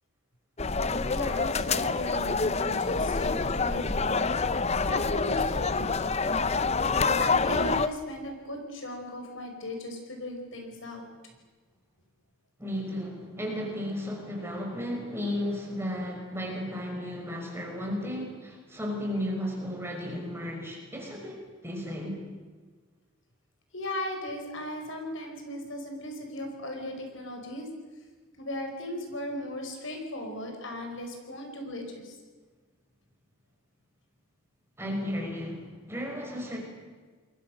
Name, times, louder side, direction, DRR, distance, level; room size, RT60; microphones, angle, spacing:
sound 1, 0.6-7.9, left 4 dB, 30° left, 0.7 m, -27 dB
voice 1, 1.1-4.5 4.8-6.1 7.2-11.1 23.7-27.7 28.4-32.2, left 1 dB, 65° left, 3 dB, 5.4 m, -37 dB
voice 2, 12.6-22.2 34.8-36.6, equal, 10° right, 0 dB, 5.8 m, -34 dB
28.5 x 22.5 x 6.6 m, 1.4 s
head